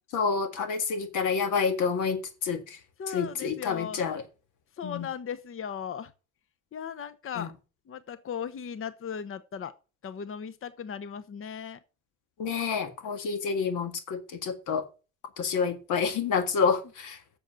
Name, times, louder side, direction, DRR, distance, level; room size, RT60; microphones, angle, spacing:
voice 1, 0.1-2.8 3.1-4.2 4.8-5.1 7.4-7.5 12.4-14.9 15.4-17.2, left 5 dB, 90° left, 1.9 m, -28 dB
voice 2, 3.0-4.0 4.8-6.1 6.7-7.5 7.9-9.7 10.0-11.8, left 7 dB, 45° left, 0.9 m, -37 dB
7.9 x 7.2 x 7.5 m
cardioid pair, 90°, 30 cm